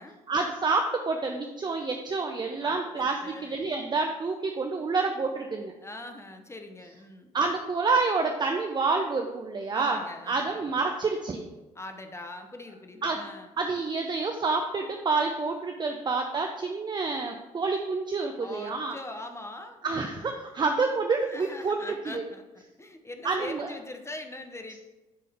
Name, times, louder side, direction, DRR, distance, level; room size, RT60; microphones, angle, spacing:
voice 1, 0.3-5.7 7.3-10.0 10.3-11.4 13.0-13.2 13.6-19.0 19.8-21.8 22.1-22.2 23.2-23.7, right 4 dB, 25° right, 4 dB, 0.6 m, -28 dB
voice 2, 2.6-3.6 5.8-7.3 9.7-10.6 11.7-13.5 15.9-16.0 18.4-19.9 21.3-24.8, left 2 dB, 15° left, 5 dB, 0.8 m, -42 dB
7.7 x 3.7 x 3.5 m, 1.1 s
hypercardioid pair, 50°, 17 cm